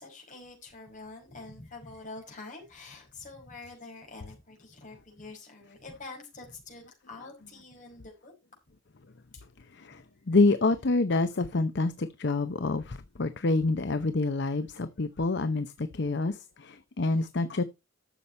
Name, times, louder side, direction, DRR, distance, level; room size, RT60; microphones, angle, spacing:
voice 1, 0.0-8.3 9.3-9.4 17.1-17.2, left 3 dB, 40° left, 5.3 m, -46 dB
voice 2, 9.7-17.6, left 3 dB, 55° left, 0.7 m, -27 dB
12.0 x 7.1 x 4.3 m
head